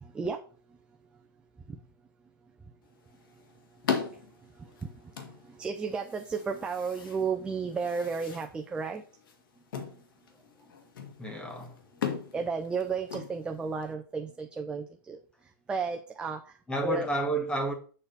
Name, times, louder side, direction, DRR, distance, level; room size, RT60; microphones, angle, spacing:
voice 1, 0.0-0.4 1.7-1.8 4.1-9.0 9.8-9.9 12.3-15.2 15.7-16.6 16.8-17.1, right 5 dB, 10° right, 0.5 m, -33 dB
sound 1, 2.8-13.9, left 7 dB, 65° left, 2.1 m, -39 dB
voice 2, 11.2-11.8 16.7-17.7, right 1 dB, 10° left, 1.5 m, -30 dB
7.4 x 4.0 x 6.5 m
hypercardioid pair, 150°, 12 cm